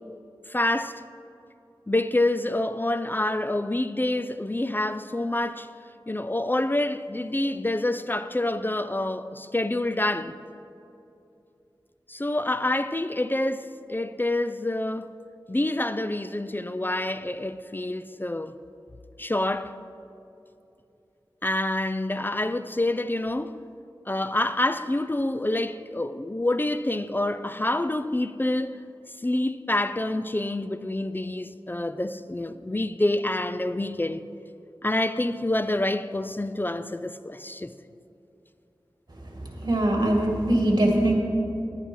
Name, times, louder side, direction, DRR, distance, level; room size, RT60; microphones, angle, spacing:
voice 1, 0.5-1.0 1.9-5.7 6.1-10.3 12.1-15.1 15.5-18.6 19.2-19.8 21.4-23.6 24.1-28.8 29.2-34.2 34.8-37.7, left 1 dB, 25° left, 0.4 m, -27 dB
voice 2, 39.3-41.1, right 1 dB, 50° right, 2.2 m, -22 dB
10.5 x 9.4 x 5.5 m
wide cardioid pair, 60°, 9 cm